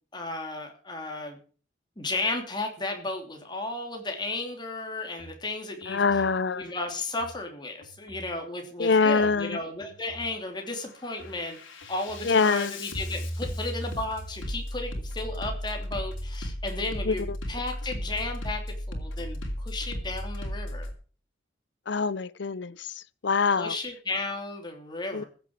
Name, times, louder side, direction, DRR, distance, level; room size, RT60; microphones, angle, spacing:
voice 1, 0.1-1.4 2.0-6.2 6.5-11.6 11.9-20.9 23.6-25.3, left 2 dB, 20° left, 3.0 m, -34 dB
Bass drum, 5.2-5.3 5.8-6.3 7.1-7.3 7.8-8.3 9.1-9.3 9.8-10.3 10.7-20.9, equal, 85° left, 2.9 m, -36 dB
voice 2, 5.9-6.7 8.8-9.6 12.2-12.7 17.0-17.4 21.9-23.7 25.1-25.2, left 4 dB, 60° left, 0.6 m, -25 dB
15.5 x 6.9 x 7.3 m
head